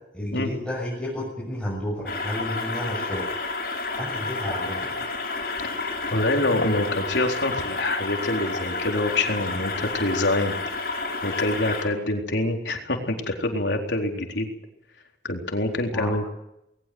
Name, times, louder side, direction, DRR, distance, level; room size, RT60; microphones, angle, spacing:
voice 1, 0.1-3.3 4.0-4.9 15.9-16.3, left 1 dB, 5° left, -6 dB, 6.9 m, -31 dB
sound 1, 2.1-11.8, left 3 dB, 55° left, 6.8 m, -30 dB
voice 2, 6.1-10.5 10.8-14.5 15.2-16.3, left 2 dB, 90° left, 2 dB, 4.0 m, -26 dB
21.0 x 19.5 x 8.0 m, 0.84 s
head